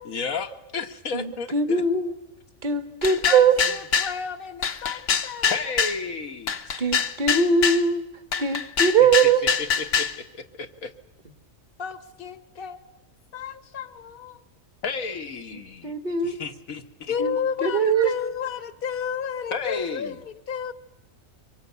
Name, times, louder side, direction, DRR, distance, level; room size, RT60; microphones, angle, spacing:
voice 1, 0.0-1.8 5.5-6.6 9.0-9.3 9.6-10.9 14.8-15.9 16.2-17.1 19.5-20.2, left 4 dB, 80° left, 6 dB, 1.9 m, -33 dB
voice 2, 1.1-2.1 2.6-3.5 6.8-8.0 8.4-9.4 15.8-16.4 17.2-18.1, right 5 dB, 35° right, 7 dB, 1.8 m, -21 dB
sound 1, 3.0-4.2 4.6-6.0 6.5-7.8 8.3-10.2, left 6 dB, 65° left, 1.4 m, -24 dB
voice 3, 3.3-5.6 11.8-12.8 13.3-14.4 17.1-20.7, left 7 dB, 45° left, 12 dB, 1.3 m, -32 dB
24.5 x 23.5 x 8.2 m, 0.97 s
omnidirectional pair, 1.4 m